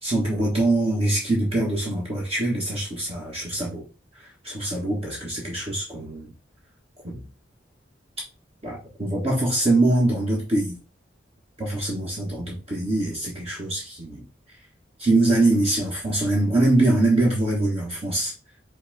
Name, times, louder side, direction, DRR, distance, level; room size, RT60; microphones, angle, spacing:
voice 1, 0.0-3.8 4.4-6.3 7.0-7.3 8.6-10.7 11.6-14.2 15.0-18.3, right 2 dB, 35° right, -4 dB, 1.4 m, -23 dB
5.5 x 2.2 x 4.1 m, 0.33 s
head